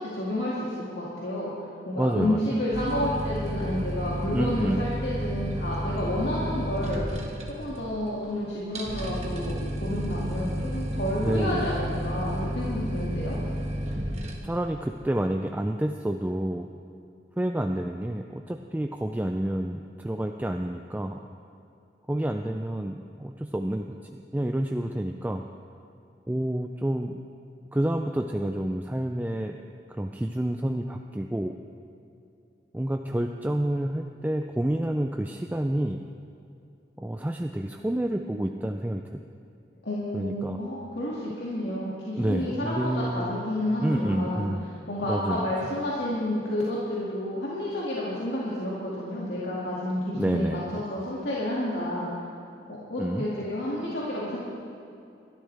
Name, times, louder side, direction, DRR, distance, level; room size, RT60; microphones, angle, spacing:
voice 1, 0.0-1.5 1.8-7.0 7.6-13.3 39.8-44.5 44.9-52.1 52.7-54.4, left 1 dB, 70° left, -7 dB, 2.2 m, -30 dB
voice 2, 2.0-2.5 4.3-4.8 11.2-11.8 14.4-16.7 17.4-21.2 22.1-25.5 26.3-27.2 27.7-29.6 29.9-31.5 32.7-36.0 37.0-39.2 40.1-40.6 42.2-43.3 43.8-44.7 45.1-45.5 50.1-50.8 53.0-53.2, right 1 dB, 10° right, 4 dB, 0.3 m, -29 dB
sound 1, 2.7-14.3, equal, 35° right, 1.5 m, -31 dB
22.0 x 13.0 x 3.4 m, 2.6 s
head